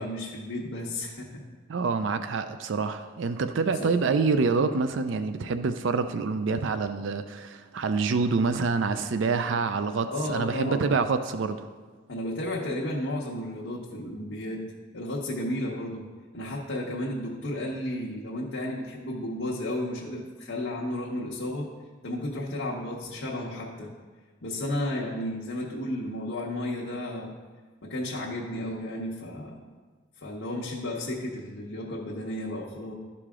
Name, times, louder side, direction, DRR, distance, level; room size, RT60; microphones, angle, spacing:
voice 1, 0.0-1.4 3.8-4.0 10.1-10.9 12.1-14.6 14.9-16.1 16.3-21.7 22.0-23.9 24.4-27.3 27.8-29.6 30.2-32.9, left 1 dB, 65° left, -6 dB, 1.0 m, -33 dB
voice 2, 1.7-11.7, right 4 dB, 60° right, 10 dB, 0.4 m, -26 dB
12.0 x 4.9 x 3.6 m, 1.4 s
head